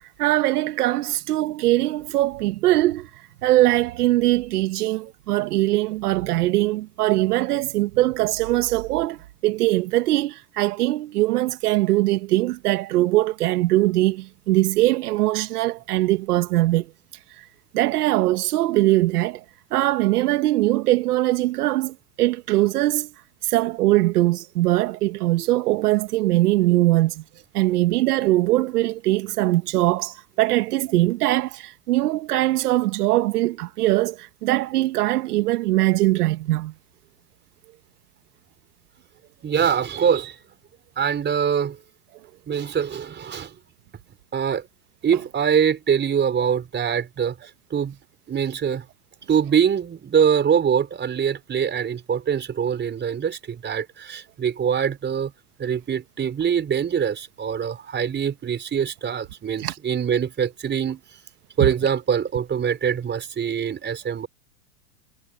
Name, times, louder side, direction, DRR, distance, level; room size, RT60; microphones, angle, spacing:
voice 1, 0.0-3.1 3.4-16.9 17.4-17.5 17.7-19.4 19.7-23.1 23.4-27.2 27.5-36.7 59.6-59.8 61.6-61.7, right 16 dB, 70° right, 1.5 m, -21 dB
voice 2, 39.4-40.3 41.0-41.8 42.5-43.5 44.3-44.6 45.0-47.3 47.7-48.0 48.3-48.8 49.3-55.3 55.6-61.0 61.6-64.3, right 7 dB, 20° right, 4.8 m, -23 dB
hypercardioid pair, 110°, 48 cm